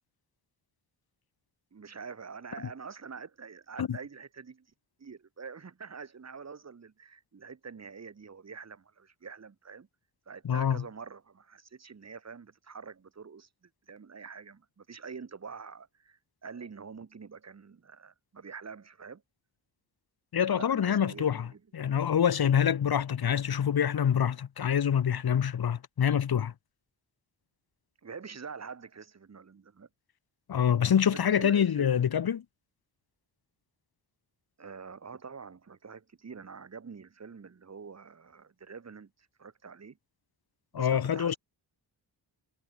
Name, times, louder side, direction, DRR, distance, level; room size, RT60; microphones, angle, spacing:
voice 1, 1.7-4.7 5.0-9.9 10.3-19.2 20.5-21.6 28.0-29.9 31.1-32.0 34.6-40.0 40.7-41.4, right 5 dB, 35° right, 7.0 m, -46 dB
voice 2, 10.4-10.8 20.3-21.5 21.7-26.5 30.5-32.4 40.7-41.3, left 8 dB, 60° left, 2.4 m, -26 dB
wide cardioid pair, 180°, 43 cm